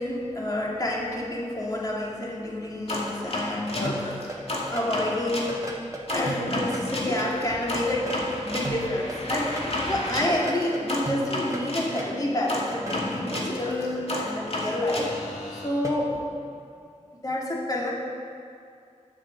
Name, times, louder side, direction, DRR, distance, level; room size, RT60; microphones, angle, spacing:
voice 1, 0.0-4.3 4.7-5.7 6.1-15.1 15.5-16.2 17.1-17.9, left 1 dB, 30° left, -3 dB, 2.4 m, -29 dB
sound 1, 2.9-5.5 6.1-11.9 12.5-15.7, left 1 dB, 50° left, 2.1 m, -31 dB
sound 2, 3.8-4.9 5.5-7.3 7.8-9.7 10.3-12.1 12.6-13.4 15.8-16.0, right 2 dB, 25° right, 1.6 m, -36 dB
10.5 x 6.5 x 7.6 m, 2.4 s
wide cardioid pair, 65°, 13 cm